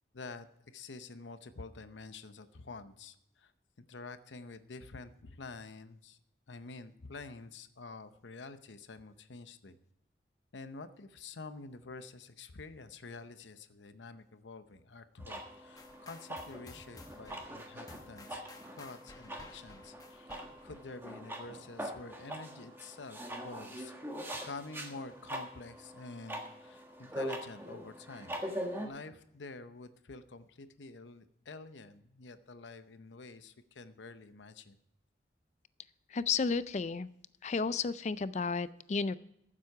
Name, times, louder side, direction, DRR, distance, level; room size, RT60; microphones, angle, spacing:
voice 1, 0.1-0.5 0.7-3.5 3.8-6.2 6.5-9.8 10.5-18.4 18.8-23.9 24.4-28.4 28.8-34.8, left 3 dB, 90° left, 11 dB, 0.8 m, -48 dB
sound 1, 15.2-28.9, right 1 dB, 15° right, 1.4 m, -43 dB
sound 2, 15.8-20.9, left 2 dB, 20° left, 1.0 m, -55 dB
voice 2, 36.1-37.1 37.4-39.2, left 5 dB, 40° left, 16 dB, 0.4 m, -32 dB
14.0 x 7.6 x 4.7 m, 0.78 s
head